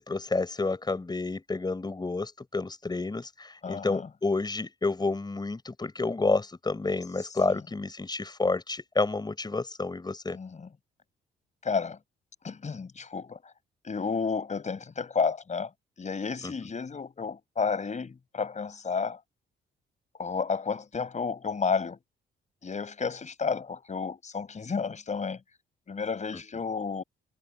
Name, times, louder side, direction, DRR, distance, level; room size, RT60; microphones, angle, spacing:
voice 1, 0.0-10.4 16.4-16.5, left 3 dB, 20° left, 5.3 m, -30 dB
voice 2, 3.6-4.1 10.3-10.7 11.6-12.0 12.4-13.4 13.8-15.7 16.0-19.2 20.2-22.0 22.6-25.4 25.9-27.0, left 5 dB, 35° left, 6.0 m, -31 dB
cardioid pair, 90°, 20 cm